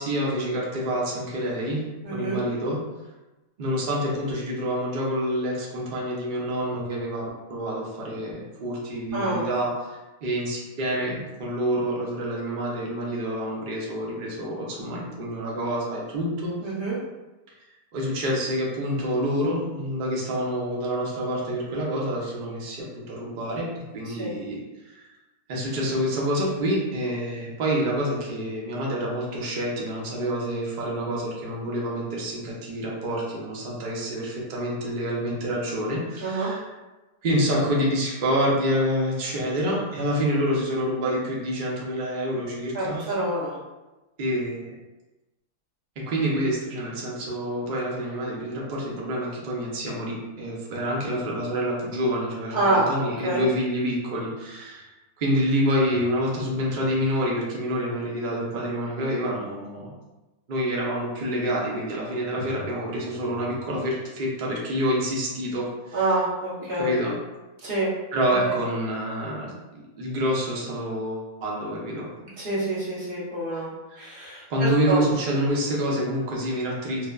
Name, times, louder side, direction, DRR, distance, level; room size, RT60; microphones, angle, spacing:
voice 1, 0.0-1.8 2.1-2.8 3.6-16.6 17.9-23.7 23.9-25.1 25.5-36.7 37.2-43.1 44.2-44.7 46.0-54.9 55.2-59.9 60.5-66.1 66.8-67.2 68.1-72.1 73.5-73.6 73.9-74.1 74.5-77.1, equal, 70° right, -4 dB, 0.4 m, -27 dB
voice 2, 2.0-2.4 9.1-9.4 16.6-17.0 24.2-24.3 36.2-36.5 42.7-43.5 52.5-52.8 53.2-53.4 65.9-66.9 67.6-67.9 68.4-68.5 72.4-73.7 74.0-75.0, right 2 dB, 45° right, -7 dB, 0.8 m, -26 dB
3.2 x 2.0 x 2.3 m, 1.1 s
omnidirectional pair, 1.7 m